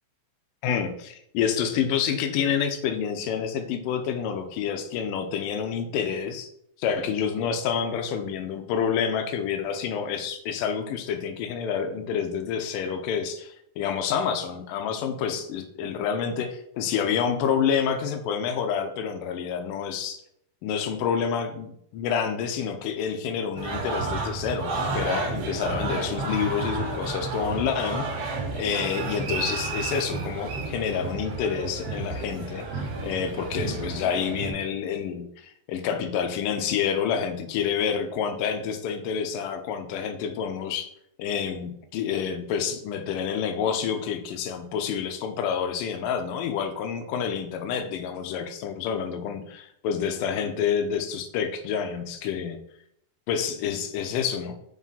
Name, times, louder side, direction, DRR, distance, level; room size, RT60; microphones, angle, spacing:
voice 1, 0.6-6.5 6.8-20.2 20.6-28.1 28.6-40.9 41.2-52.6 53.3-54.5, left 7 dB, 75° left, 7 dB, 2.2 m, -28 dB
sound 1, 23.6-34.5, right 3 dB, 55° right, 1.8 m, -31 dB
7.3 x 3.2 x 5.5 m, 0.72 s
omnidirectional pair, 4.2 m